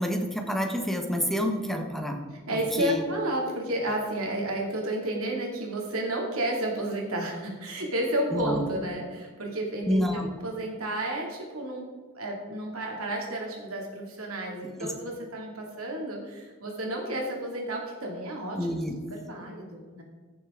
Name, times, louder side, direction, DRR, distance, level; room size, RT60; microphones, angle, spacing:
voice 1, 0.0-3.0 8.3-8.6 9.8-10.3 14.8-14.9 18.5-19.0, equal, ahead, 3 dB, 1.2 m, -28 dB
voice 2, 2.5-11.9 12.1-18.8 19.1-20.0, right 1 dB, 75° right, 0 dB, 2.6 m, -31 dB
15.0 x 6.9 x 3.8 m, 1.5 s
head